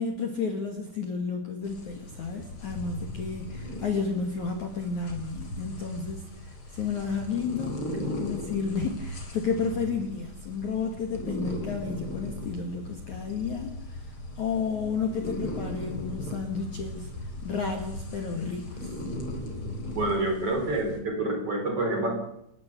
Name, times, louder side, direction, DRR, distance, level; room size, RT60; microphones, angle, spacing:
voice 1, 0.0-17.1 17.4-18.9, left 5 dB, 45° left, 3 dB, 3.0 m, -32 dB
sound 1, 1.6-21.0, left 1 dB, 30° left, 4.1 m, -38 dB
voice 2, 19.9-22.1, right 2 dB, 30° right, 3 dB, 5.2 m, -27 dB
29.5 x 13.0 x 8.4 m, 0.79 s
omnidirectional pair, 5.4 m